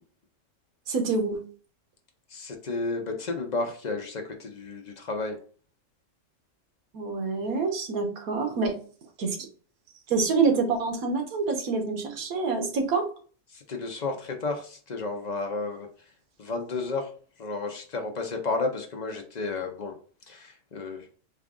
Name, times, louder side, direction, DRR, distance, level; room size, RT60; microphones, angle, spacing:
voice 1, 0.9-1.4 6.9-8.7 9.2-9.4 10.1-13.1, right 4 dB, 90° right, 4 dB, 1.4 m, -26 dB
voice 2, 2.3-5.4 13.5-15.9 16.4-17.1 17.4-19.9 20.3-21.1, left 3 dB, 45° left, 3 dB, 0.6 m, -32 dB
4.5 x 2.4 x 3.6 m, 0.42 s
omnidirectional pair, 1.5 m